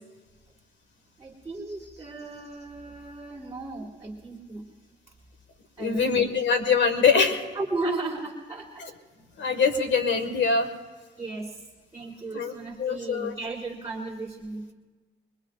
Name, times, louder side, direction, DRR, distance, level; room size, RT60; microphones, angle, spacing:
voice 1, 1.2-4.6 5.8-6.3 7.5-8.9 11.2-11.7 11.9-14.7, right 3 dB, 15° right, -3 dB, 1.8 m, -35 dB
voice 2, 5.8-7.4 9.4-10.7 12.3-12.5 12.8-13.3, left 5 dB, 65° left, 6 dB, 1.7 m, -23 dB
24.5 x 21.0 x 2.5 m, 1.3 s
cardioid pair, 90°, 20 cm